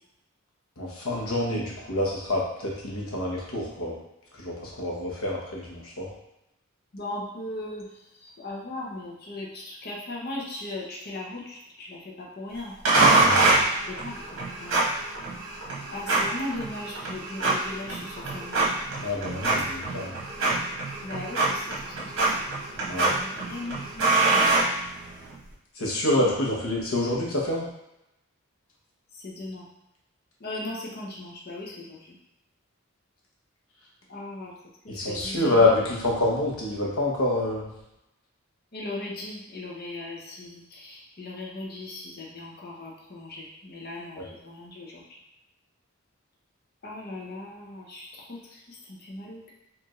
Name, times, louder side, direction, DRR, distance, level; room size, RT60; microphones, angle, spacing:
voice 1, 0.8-4.0 4.4-6.1 13.2-13.6 19.0-20.1 22.9-23.1 25.8-27.7 34.9-37.7 44.2-44.3, left 2 dB, 80° left, -3 dB, 1.1 m, -27 dB
voice 2, 6.9-7.9 8.2-13.0 13.9-14.2 14.6-14.8 15.9-18.7 21.0-22.5 23.0-24.6 26.0-26.4 29.1-29.7 30.4-32.0 34.1-34.5 34.8-35.6 38.7-45.0 46.8-49.5, left 2 dB, 45° left, -2 dB, 0.8 m, -38 dB
sound 1, 12.9-25.3, right 3 dB, 65° right, 1.1 m, -25 dB
4.5 x 2.7 x 3.1 m, 0.86 s
head